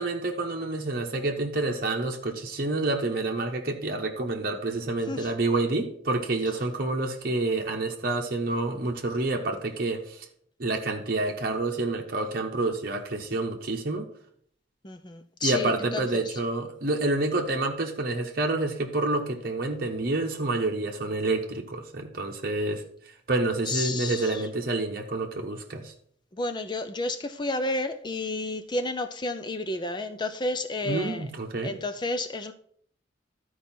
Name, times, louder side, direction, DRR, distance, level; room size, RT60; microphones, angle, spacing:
voice 1, 0.0-10.3 10.6-14.1 15.4-22.9 23.3-25.9 30.8-31.8, right 2 dB, 50° right, 1 dB, 0.9 m, -28 dB
voice 2, 14.8-16.4 23.7-24.5 26.3-31.3 31.6-32.5, left 2 dB, 25° left, 7 dB, 0.5 m, -31 dB
12.5 x 4.7 x 4.3 m, 0.63 s
head